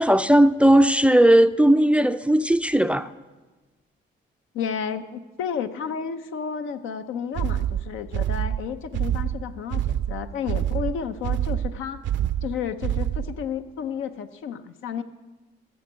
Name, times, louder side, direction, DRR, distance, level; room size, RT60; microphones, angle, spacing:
voice 1, 0.0-3.1, right 1 dB, 5° right, 0.3 m, -17 dB
voice 2, 4.5-12.0 12.4-15.0, left 7 dB, 85° left, 0.7 m, -31 dB
sound 1, 7.4-13.4, right 11 dB, 70° right, 0.5 m, -26 dB
15.0 x 7.0 x 6.1 m
cardioid pair, 90°, 20 cm